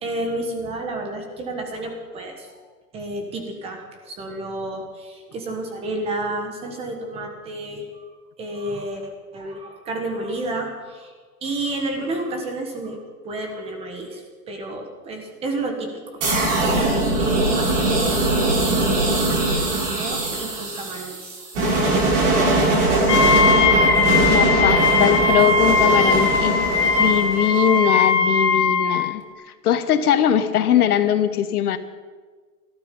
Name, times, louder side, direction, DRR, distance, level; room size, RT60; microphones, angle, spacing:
voice 1, 0.0-2.6 2.9-8.0 8.4-11.1 11.4-13.0 13.2-15.9 16.3-22.1, right 2 dB, 10° right, 4 dB, 1.4 m, -31 dB
sound 1, 16.2-28.0, right 2 dB, 50° right, 6.9 m, -21 dB
Wind instrument woodwind instrument, 23.1-29.0, left 4 dB, 85° left, 2.8 m, -19 dB
voice 2, 24.3-26.6 27.0-29.2 29.6-31.8, left 10 dB, 65° left, 12 dB, 1.2 m, -20 dB
19.0 x 13.5 x 5.4 m, 1.5 s
hypercardioid pair, 170°, 47 cm